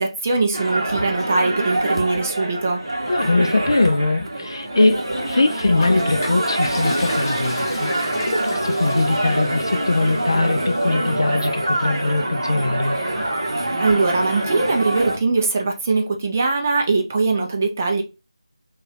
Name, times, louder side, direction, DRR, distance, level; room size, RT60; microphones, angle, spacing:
voice 1, 0.0-2.8 13.8-18.0, right 3 dB, 25° right, 0.5 m, -21 dB
sound 1, 0.5-15.2, right 1 dB, 45° right, 1.0 m, -25 dB
voice 2, 3.1-13.0, left 2 dB, 45° left, 0.4 m, -21 dB
Toilet flush, 5.7-10.8, left 1 dB, 30° left, 1.0 m, -32 dB
3.8 x 2.3 x 2.9 m
figure-of-eight pair, 160°, 3 cm